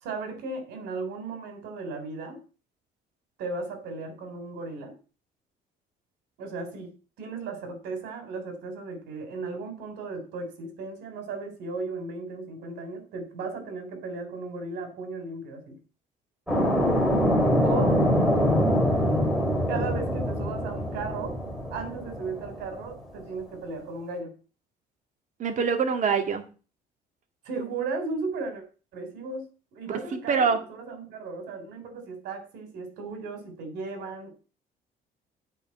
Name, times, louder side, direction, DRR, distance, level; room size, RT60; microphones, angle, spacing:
voice 1, 0.0-2.4 3.4-4.9 6.4-6.9 7.2-15.8 17.6-18.0 19.7-21.4 21.7-24.3 27.5-28.6 28.9-29.4 29.7-30.4 30.7-34.3, right 3 dB, 85° right, 6 dB, 3.6 m, -35 dB
sound 1, 16.5-22.8, equal, 5° right, 3.7 m, -24 dB
voice 2, 25.4-26.4 30.1-30.6, right 6 dB, 45° right, 6 dB, 1.9 m, -24 dB
8.4 x 5.3 x 7.1 m, 0.36 s
cardioid pair, 110°, 17 cm